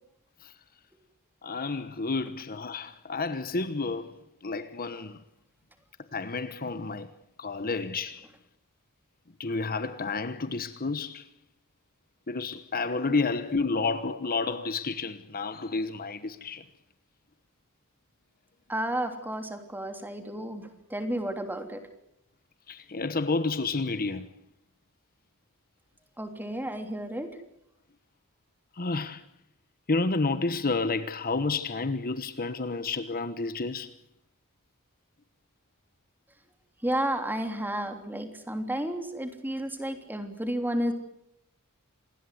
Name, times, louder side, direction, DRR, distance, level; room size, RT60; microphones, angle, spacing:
voice 1, 1.4-5.2 6.1-7.1 7.4-8.3 9.4-11.2 12.3-16.6 22.7-24.3 28.8-29.2 29.9-33.9, left 3 dB, 40° left, 1.2 m, -30 dB
voice 2, 18.7-21.8 26.2-27.3 36.8-40.9, right 1 dB, 10° right, 3.2 m, -32 dB
27.0 x 20.0 x 8.0 m
head